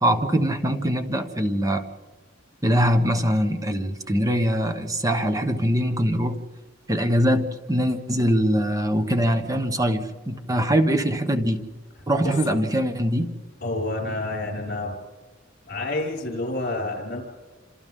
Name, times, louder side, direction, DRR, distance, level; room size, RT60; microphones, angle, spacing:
voice 1, 0.0-1.8 2.6-6.4 6.9-11.6 12.1-13.3, equal, 20° right, 7 dB, 1.2 m, -22 dB
voice 2, 12.2-12.6 13.6-14.9 15.7-17.2, left 2 dB, 55° left, 0 dB, 5.5 m, -29 dB
28.5 x 27.0 x 3.8 m, 1.4 s
head